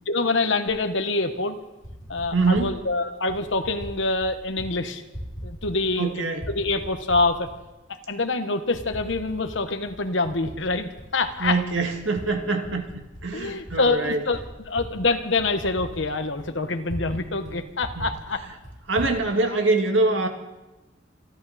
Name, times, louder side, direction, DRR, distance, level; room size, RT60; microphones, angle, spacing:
voice 1, 0.1-1.6 2.1-5.0 5.4-7.5 8.1-11.6 13.3-14.4 14.7-18.4, left 3 dB, 70° left, 8 dB, 1.3 m, -25 dB
Typing, 0.7-0.8 1.6-2.7 3.3-3.9 4.2-4.7 5.0-6.0 6.3-7.5 8.1-8.2 8.7-9.6 9.9-12.2 12.6-17.2 17.4-17.5 17.8-19.1, equal, 20° left, 6.9 m, -39 dB
voice 2, 2.3-2.7 6.0-6.4 11.4-12.9 13.2-14.2 17.4-17.6 18.0-18.1 18.9-20.3, right 3 dB, 75° right, 4 dB, 2.1 m, -24 dB
27.0 x 11.5 x 4.2 m, 1.0 s
head